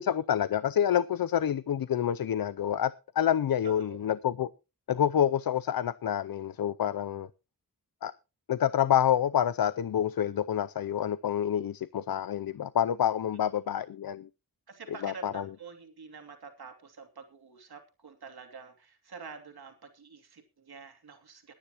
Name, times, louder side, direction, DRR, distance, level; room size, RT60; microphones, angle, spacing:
voice 1, 0.0-4.5 4.9-7.3 8.0-8.1 8.5-14.3 15.0-15.4, left 10 dB, 65° left, 0.5 m, -28 dB
voice 2, 3.6-4.1 13.6-13.8 14.7-21.5, right 5 dB, 80° right, 2.9 m, -47 dB
20.5 x 10.0 x 3.0 m
wide cardioid pair, 125°, 37 cm